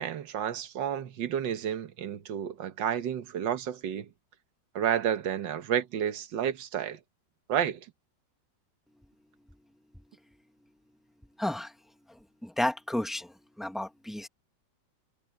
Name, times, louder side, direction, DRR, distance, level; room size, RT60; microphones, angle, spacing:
voice 1, 0.0-4.1 4.8-7.0 7.5-7.9, right 9 dB, 75° right, 1.9 m, -31 dB
voice 2, 11.4-11.7 12.4-13.3 13.6-14.3, left 1 dB, ahead, 1.2 m, -31 dB
omnidirectional pair, 2.0 m